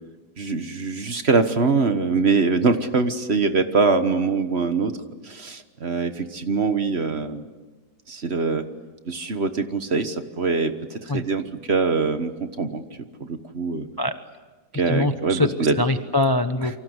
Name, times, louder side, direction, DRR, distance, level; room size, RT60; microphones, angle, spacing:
voice 1, 0.4-5.0 5.2-7.4 8.1-8.7 9.1-12.8 13.2-13.9 14.7-15.8, right 4 dB, 40° right, 9 dB, 1.5 m, -23 dB
voice 2, 14.9-15.5 15.8-16.8, left 2 dB, 20° left, 9 dB, 0.7 m, -22 dB
29.0 x 24.5 x 8.1 m, 1.3 s
omnidirectional pair, 1.8 m